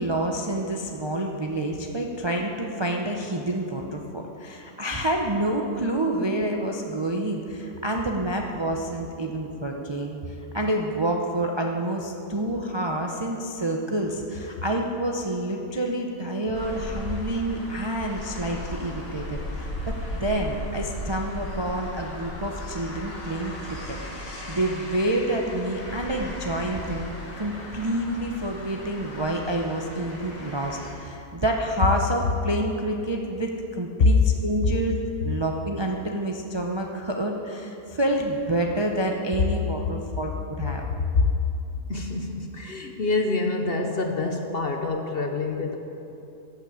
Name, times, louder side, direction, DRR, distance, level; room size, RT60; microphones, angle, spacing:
voice 1, 0.0-10.2 10.5-33.5 33.8-35.0 35.2-40.8, right 1 dB, 25° right, 1 dB, 0.6 m, -28 dB
Small city, 16.5-30.9, left 1 dB, 65° left, 2.6 m, -36 dB
voice 2, 41.9-45.8, left 3 dB, 50° left, 4 dB, 0.9 m, -25 dB
14.5 x 6.0 x 8.7 m, 2.8 s
omnidirectional pair, 1.5 m